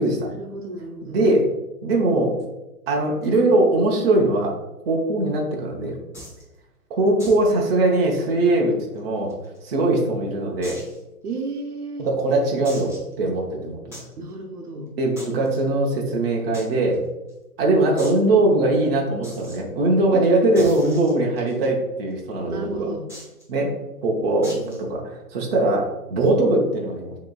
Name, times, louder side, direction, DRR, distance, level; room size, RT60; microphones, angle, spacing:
voice 1, 0.3-1.2 11.2-12.1 14.2-15.0 20.1-20.2 22.5-23.1 24.3-24.9, right 2 dB, 75° right, 3 dB, 0.9 m, -33 dB
voice 2, 1.0-1.4 1.8-2.3 2.9-4.5 4.8-6.0 7.0-9.3 9.6-10.8 12.0-12.9 13.2-14.0 15.0-17.0 17.6-22.9 23.5-23.7 24.0-27.2, right 2 dB, 40° right, -1 dB, 0.8 m, -21 dB
sound 1, 6.1-6.4 7.2-7.5 7.7-7.8 8.2-8.3 9.0-9.8 10.6-11.0 11.5-11.6 12.6-13.1 13.9-14.1 15.2-15.6 16.5-16.7 16.9-17.0 17.3-17.4 18.0-18.2 19.2-19.6 20.5-21.6 23.1-23.4 24.4-24.8, equal, 5° left, 0.8 m, -39 dB
7.5 x 3.0 x 2.3 m, 1.0 s
hypercardioid pair, 155°, 45 cm